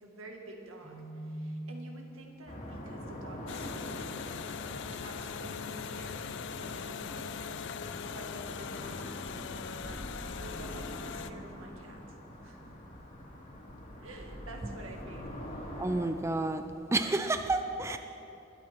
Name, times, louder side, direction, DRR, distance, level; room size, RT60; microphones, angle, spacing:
voice 1, 0.0-4.2 4.9-6.3 6.6-7.4 8.1-9.3 9.8-10.1 10.4-12.2 12.4-12.6 14.0-15.4, right 1 dB, 85° right, 1 dB, 1.8 m, -49 dB
Keyboard (musical), 0.8-2.7, right 1 dB, 40° right, 3.2 m, -43 dB
sound 1, 2.5-16.1, equal, 40° left, 2.3 m, -44 dB
sound 2, 3.5-11.3, left 7 dB, 60° left, 0.4 m, -41 dB
voice 2, 15.8-16.6 16.9-18.0, right 2 dB, 15° right, 8 dB, 0.4 m, -30 dB
21.0 x 8.9 x 4.4 m, 2.8 s
head